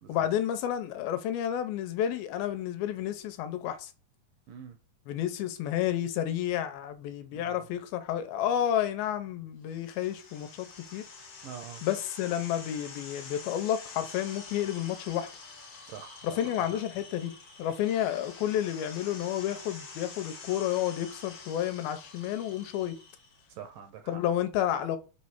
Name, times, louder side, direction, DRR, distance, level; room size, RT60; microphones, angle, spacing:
voice 1, 0.1-3.9 5.1-10.7 10.9-11.1 11.8-15.3 16.2-17.3 17.6-23.0 24.1-25.0, left 11 dB, 85° left, 2.5 m, -30 dB
voice 2, 7.3-7.7 11.4-11.8 15.9-16.8 23.5-24.2, right 8 dB, 75° right, 2.2 m, -45 dB
sound 1, 9.7-23.5, left 4 dB, 50° left, 2.0 m, -47 dB
6.1 x 3.2 x 5.8 m
omnidirectional pair, 4.4 m